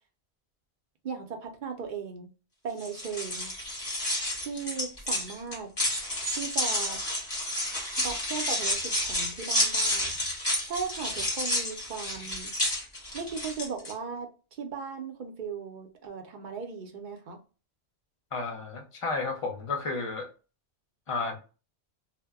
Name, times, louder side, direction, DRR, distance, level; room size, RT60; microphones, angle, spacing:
voice 1, 1.0-2.3 2.6-3.5 4.4-5.7 6.4-7.0 8.0-10.1 10.6-12.5 13.1-14.3 14.6-17.4, right 5 dB, 55° right, 4 dB, 0.6 m, -37 dB
sound 1, 2.8-13.9, left 1 dB, 25° left, 0.9 m, -30 dB
voice 2, 18.3-20.3 21.1-21.4, left 3 dB, 45° left, 3 dB, 0.4 m, -32 dB
2.1 x 2.0 x 3.4 m, 0.34 s
omnidirectional pair, 1.1 m